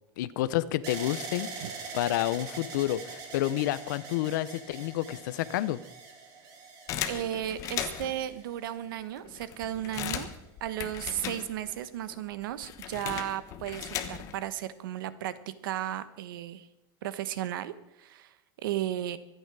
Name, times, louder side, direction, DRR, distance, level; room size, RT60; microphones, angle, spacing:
voice 1, 0.2-1.5 1.9-5.8, left 14 dB, 65° left, 15 dB, 0.8 m, -29 dB
sound 1, 0.8-8.8 9.6-10.2, right 4 dB, 35° right, 2.6 m, -43 dB
sound 2, 6.9-8.2 8.9-9.0 9.2-11.9 12.1-14.5, left 10 dB, 30° left, 1.1 m, -37 dB
voice 2, 7.0-10.3 10.6-15.3 15.6-16.7 17.0-17.7 18.0-18.3 18.6-19.2, right 12 dB, 85° right, 14 dB, 1.1 m, -34 dB
24.5 x 9.0 x 4.8 m, 0.89 s
supercardioid pair, 175°, 11 cm